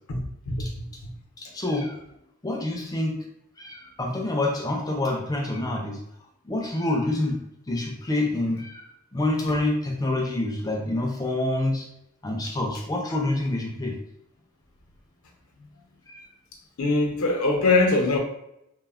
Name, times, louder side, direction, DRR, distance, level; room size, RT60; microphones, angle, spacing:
voice 1, 0.1-0.7 1.0-1.1 16.8-18.2, left 3 dB, 85° left, 2 dB, 0.6 m, -22 dB
voice 2, 1.4-2.0 2.4-3.1 3.6-6.0 6.4-7.4 7.7-8.9 9.1-11.9 12.2-13.9 16.1-16.3, left 2 dB, 15° left, 1 dB, 0.4 m, -27 dB
3.2 x 2.0 x 2.3 m, 0.79 s
head